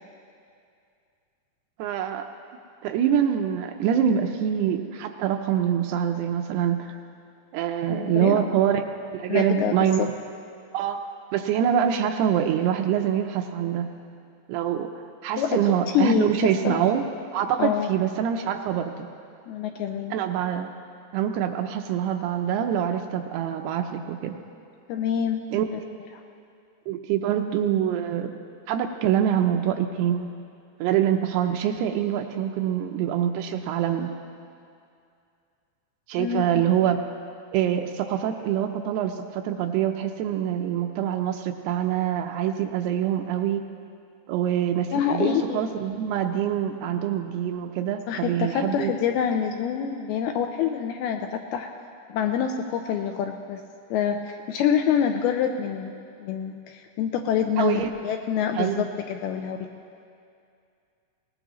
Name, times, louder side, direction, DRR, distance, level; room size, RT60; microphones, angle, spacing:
voice 1, 1.8-2.3 2.8-7.0 7.5-8.8 9.1-10.1 10.7-13.9 14.5-14.9 15.2-17.1 17.3-19.0 20.1-20.7 21.1-24.4 25.5-25.7 26.9-28.3 28.7-30.3 30.8-34.1 36.1-37.0 37.5-43.6 44.3-48.9 57.6-57.9 58.6-58.9, right 9 dB, 80° right, 5 dB, 2.5 m, -25 dB
voice 2, 7.9-8.4 9.3-10.1 15.4-15.6 15.9-16.3 16.6-16.8 17.6-17.9 19.5-20.1 24.9-25.4 36.2-36.4 44.9-45.6 48.1-51.7 52.1-53.6 53.9-59.6, left 8 dB, 85° left, 4 dB, 2.3 m, -26 dB
21.0 x 19.5 x 3.1 m, 2.4 s
omnidirectional pair, 4.9 m